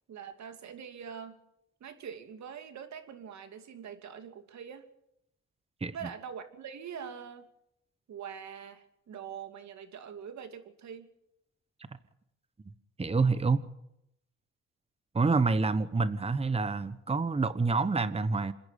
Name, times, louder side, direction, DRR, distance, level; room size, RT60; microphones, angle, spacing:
voice 1, 0.1-1.4 1.8-4.8 5.9-7.5 8.1-11.1, right 7 dB, 65° right, 8 dB, 2.8 m, -43 dB
voice 2, 13.0-13.6 15.1-18.5, right 4 dB, 20° right, 13 dB, 1.2 m, -27 dB
27.5 x 10.5 x 9.3 m, 0.80 s
cardioid pair, 90°, 30 cm